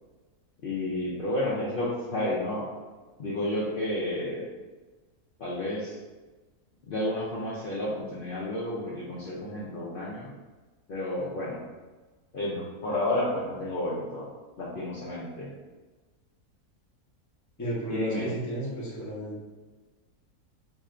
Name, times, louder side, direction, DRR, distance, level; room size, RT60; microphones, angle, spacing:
voice 1, 0.6-2.7 3.2-4.5 5.4-6.0 6.9-10.3 10.9-11.6 12.3-14.3 14.6-15.5 17.9-18.3, left 1 dB, 70° left, -6 dB, 0.5 m, -31 dB
voice 2, 17.6-19.4, right 1 dB, 20° left, -6 dB, 0.6 m, -33 dB
2.7 x 2.5 x 4.2 m, 1.3 s
omnidirectional pair, 1.6 m